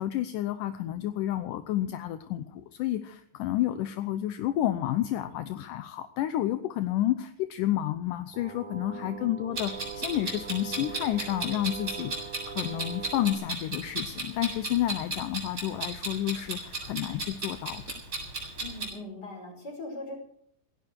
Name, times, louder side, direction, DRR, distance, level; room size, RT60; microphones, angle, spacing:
voice 1, 0.0-17.8, left 13 dB, 75° left, 10 dB, 2.2 m, -30 dB
sound 1, 8.3-13.3, right 8 dB, 85° right, 4.4 m, -42 dB
voice 2, 8.9-9.3 18.6-20.1, left 2 dB, 25° left, 2 dB, 5.6 m, -40 dB
Clock, 9.6-18.9, right 2 dB, 20° right, 8.0 m, -35 dB
18.0 x 17.0 x 4.7 m, 0.66 s
omnidirectional pair, 4.0 m